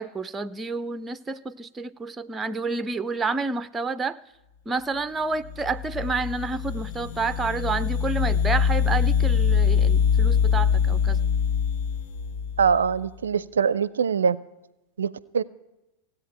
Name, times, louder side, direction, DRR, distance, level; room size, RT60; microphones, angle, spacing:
voice 1, 0.0-4.2 4.7-11.2, right 3 dB, 15° right, 0.5 m, -29 dB
sound 1, 5.4-13.0, left 7 dB, 55° left, 0.6 m, -23 dB
voice 2, 12.6-14.4 15.0-15.4, right 6 dB, 70° right, 0.4 m, -23 dB
16.5 x 8.6 x 9.1 m
figure-of-eight pair, 90°, 0 cm